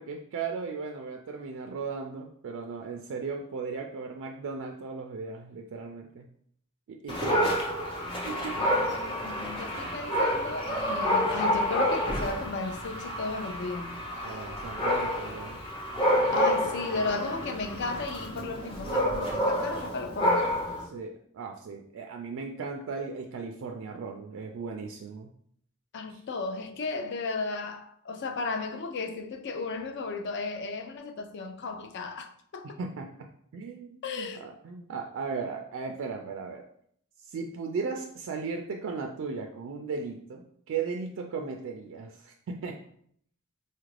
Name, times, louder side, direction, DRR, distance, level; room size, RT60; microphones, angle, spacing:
voice 1, 0.0-6.3 6.9-7.4 8.3-8.6 9.3-9.5 14.2-15.6 20.8-25.3 26.1-26.2 32.8-33.1 33.5-36.6 37.2-42.8, right 5 dB, 60° right, 0.3 m, -36 dB
Dog, 7.1-20.8, equal, 25° left, 0.8 m, -29 dB
voice 2, 8.6-14.0 16.3-20.5 25.9-32.8 34.0-34.4, left 3 dB, 50° left, 0.4 m, -35 dB
4.2 x 2.4 x 3.2 m
head